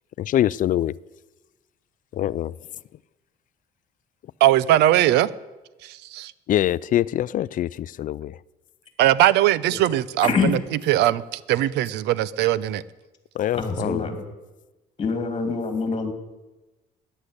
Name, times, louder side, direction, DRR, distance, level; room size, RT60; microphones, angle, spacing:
voice 1, 0.2-0.9 2.2-2.5 6.5-7.7 8.0-8.3 13.4-14.0, left 12 dB, 50° left, 0.4 m, -23 dB
voice 2, 4.4-5.3 5.8-6.3 9.0-10.6 10.9-12.8, right 13 dB, 85° right, 0.7 m, -20 dB
voice 3, 13.5-14.3 15.0-16.1, left 4 dB, 30° left, 2.8 m, -25 dB
14.0 x 10.0 x 9.9 m
cardioid pair, 110°, 17 cm